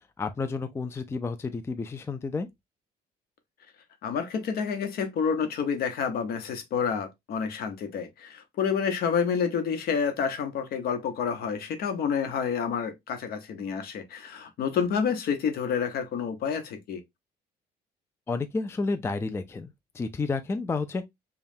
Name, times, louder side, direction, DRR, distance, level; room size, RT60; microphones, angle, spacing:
voice 1, 0.2-2.5 18.3-21.0, left 4 dB, 15° left, 0.4 m, -31 dB
voice 2, 4.0-17.0, left 6 dB, 65° left, 1.0 m, -29 dB
5.2 x 2.3 x 2.7 m
cardioid pair, 110°, 17 cm